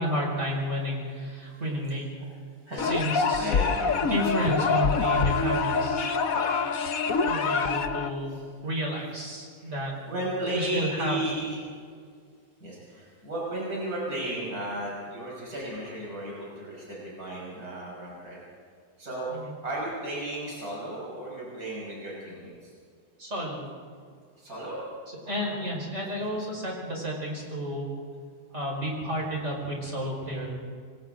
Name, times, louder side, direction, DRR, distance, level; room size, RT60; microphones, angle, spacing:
voice 1, 0.0-2.1 2.8-3.5 4.1-6.1 7.2-9.9 10.5-11.2 19.3-19.5 23.2-23.7 25.3-27.9 28.5-30.5, equal, 45° right, -2 dB, 5.7 m, -31 dB
voice 2, 1.4-1.7 2.2-2.3 2.7-4.0 8.3-8.4 9.6-11.6 12.6-18.4 19.0-19.3 19.6-22.7 24.4-24.8 25.2-25.6, right 1 dB, 70° right, -5 dB, 6.3 m, -34 dB
sound 1, 2.8-8.1, left 5 dB, 60° left, 1.4 m, -25 dB
27.5 x 24.5 x 3.9 m, 2.1 s
omnidirectional pair, 1.7 m